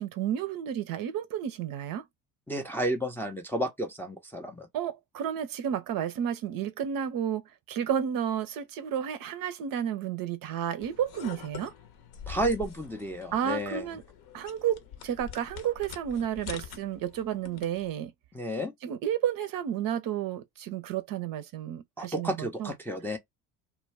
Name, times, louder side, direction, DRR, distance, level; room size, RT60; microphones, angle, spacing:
voice 1, 0.0-2.0 4.7-11.7 13.3-14.0 14.3-18.1 18.8-22.7, right 9 dB, 45° right, 0.6 m, -31 dB
voice 2, 2.5-4.7 12.3-13.9 18.3-18.7 22.0-23.2, right 1 dB, 5° left, 0.5 m, -31 dB
sound 1, 10.8-17.9, left 7 dB, 50° left, 0.8 m, -45 dB
2.2 x 2.2 x 3.2 m
hypercardioid pair, 65°, 48 cm